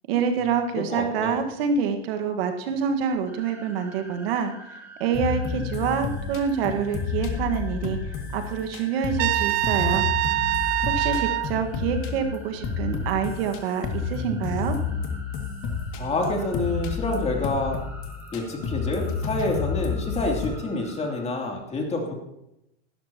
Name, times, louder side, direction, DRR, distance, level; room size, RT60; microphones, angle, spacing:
voice 1, 0.1-8.0 8.3-10.1 10.9-14.8, right 7 dB, 65° right, 6 dB, 1.6 m, -27 dB
voice 2, 0.7-1.4 16.0-17.8 18.3-22.1, left 2 dB, 20° left, 1 dB, 2.8 m, -28 dB
sound 1, 3.3-21.2, right 1 dB, 5° right, 3.6 m, -47 dB
sound 2, 5.1-13.6 13.8-20.5, left 6 dB, 40° left, 2.2 m, -30 dB
Trumpet, 9.2-11.5, right 18 dB, 40° right, 0.5 m, -24 dB
15.5 x 13.0 x 2.9 m, 0.83 s
hypercardioid pair, 120°, 32 cm